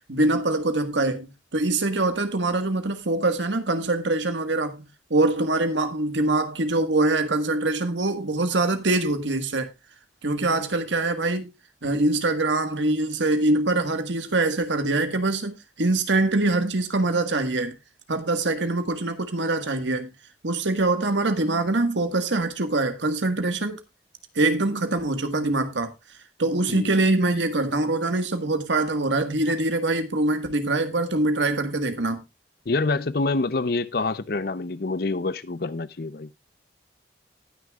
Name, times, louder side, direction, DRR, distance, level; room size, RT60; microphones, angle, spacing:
voice 1, 0.1-9.7 10.2-11.5 11.8-17.8 18.1-20.1 20.4-23.8 24.4-25.9 26.4-32.2, right 2 dB, 80° right, 1.6 m, -24 dB
voice 2, 32.7-36.3, left 3 dB, 55° left, 0.6 m, -26 dB
19.0 x 6.4 x 2.4 m
head